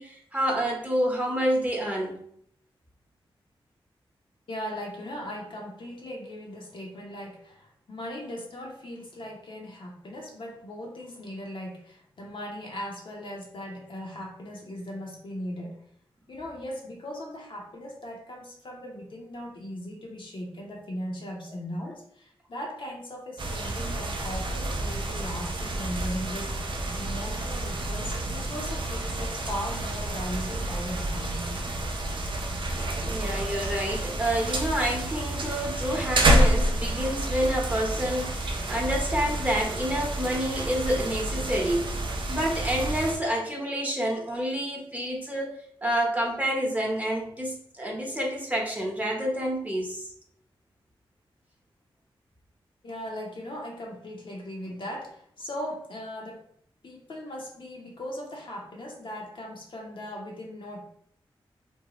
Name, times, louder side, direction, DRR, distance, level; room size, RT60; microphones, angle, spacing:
voice 1, 0.0-2.2 33.0-42.0 42.3-45.5 45.8-50.1, equal, 15° right, -1 dB, 0.8 m, -28 dB
voice 2, 4.5-15.8 16.3-31.7 52.8-56.4 56.8-60.9, equal, 60° left, -1 dB, 0.7 m, -38 dB
sound 1, 23.4-43.2, right 1 dB, 60° right, 0.5 m, -29 dB
2.6 x 2.2 x 3.0 m, 0.66 s
cardioid pair, 50°, 10 cm